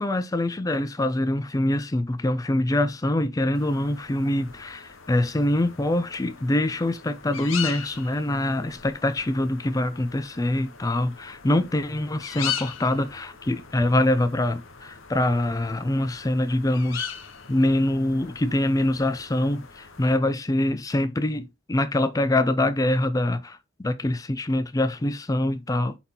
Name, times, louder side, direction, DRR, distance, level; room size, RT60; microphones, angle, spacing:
voice 1, 0.0-17.1 17.5-26.0, left 1 dB, 15° left, 0.4 m, -24 dB
sound 1, 3.5-20.2, left 8 dB, 75° left, 1.0 m, -40 dB
8.0 x 4.1 x 3.7 m
head